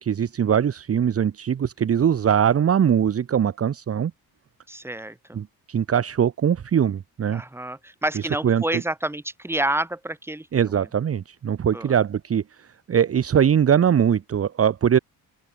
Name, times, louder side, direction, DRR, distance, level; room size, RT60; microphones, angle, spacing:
voice 1, 0.0-4.1 5.3-7.4 8.4-8.8 10.5-15.0, right 8 dB, 35° right, 1.7 m, -21 dB
voice 2, 4.7-5.4 7.3-10.5 11.7-11.9, right 1 dB, 5° right, 6.1 m, -29 dB
open air
cardioid pair, 175°, 38 cm